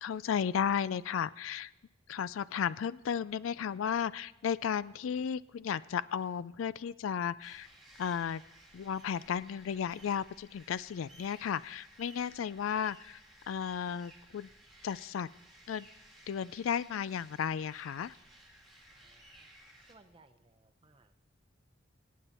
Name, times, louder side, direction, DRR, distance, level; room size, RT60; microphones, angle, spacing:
voice 1, 0.0-1.7 2.1-7.7 8.0-8.4 8.7-13.2 13.5-14.5 14.8-15.3 15.7-15.9 16.3-18.2, left 7 dB, 85° left, 19 dB, 0.4 m, -34 dB
sound 1, 7.4-19.9, right 1 dB, ahead, 1.9 m, -58 dB
voice 2, 18.9-19.5 19.9-21.2, right 2 dB, 25° right, 10 dB, 0.7 m, -63 dB
25.0 x 8.5 x 4.3 m, 1.0 s
head